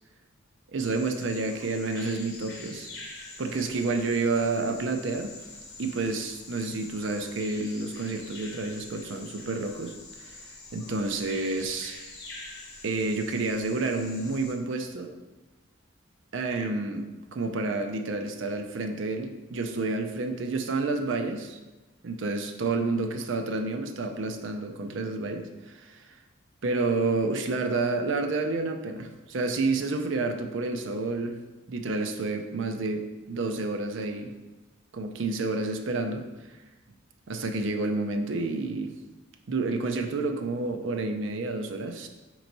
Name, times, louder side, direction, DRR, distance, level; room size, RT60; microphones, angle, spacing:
voice 1, 0.7-2.9 3.4-5.3 5.8-10.4 10.7-12.0 12.8-15.1 16.3-21.6 22.0-26.0 26.6-31.4 31.7-34.3 34.9-36.3 37.3-38.9 39.5-42.1, right 3 dB, 70° right, 5 dB, 0.5 m, -29 dB
Bird vocalization bird call bird song, 0.8-14.5, left 3 dB, 55° left, 0.9 m, -45 dB
4.4 x 3.1 x 3.9 m, 1.1 s
head